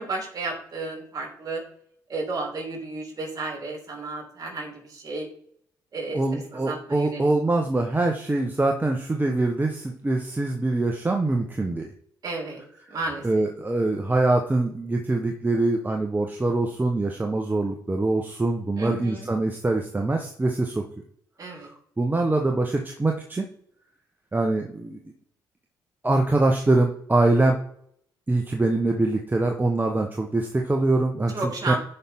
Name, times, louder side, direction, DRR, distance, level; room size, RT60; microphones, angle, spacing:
voice 1, 0.0-1.6 2.1-5.3 5.9-7.3 12.2-12.6 12.9-13.3 18.8-19.3 21.4-21.7 31.3-31.8, right 3 dB, 45° right, -1 dB, 4.0 m, -32 dB
voice 2, 6.1-11.9 13.2-20.8 21.5-21.7 22.0-23.4 24.3-25.0 26.0-27.6 28.3-31.3 31.7-31.8, right 2 dB, 20° right, 2 dB, 1.2 m, -24 dB
11.0 x 5.6 x 3.7 m, 0.65 s
supercardioid pair, 60°, 9 cm